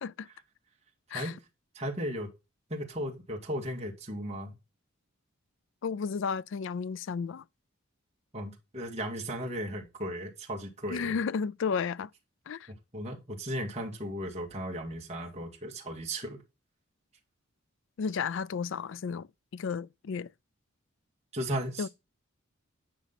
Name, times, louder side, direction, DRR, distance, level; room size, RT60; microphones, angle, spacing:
voice 1, 1.7-2.3 2.7-4.5 8.3-11.2 12.9-16.4 21.3-21.9, equal, 30° right, 2.0 m, -36 dB
voice 2, 5.8-7.4 10.9-12.1 12.5-12.7 18.0-19.3 19.5-20.3 21.8-21.9, left 6 dB, 60° left, 0.4 m, -33 dB
10.0 x 5.5 x 4.2 m
head